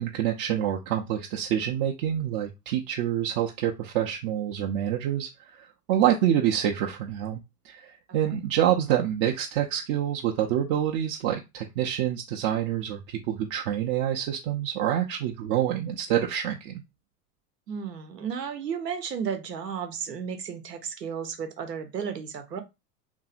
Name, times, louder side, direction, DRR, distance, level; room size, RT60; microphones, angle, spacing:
voice 1, 0.0-5.3 5.6-16.8, right 11 dB, 40° right, 0.5 m, -27 dB
voice 2, 17.7-22.6, right 7 dB, 90° right, 0.8 m, -33 dB
2.9 x 2.6 x 2.4 m
hypercardioid pair, 95°, 47 cm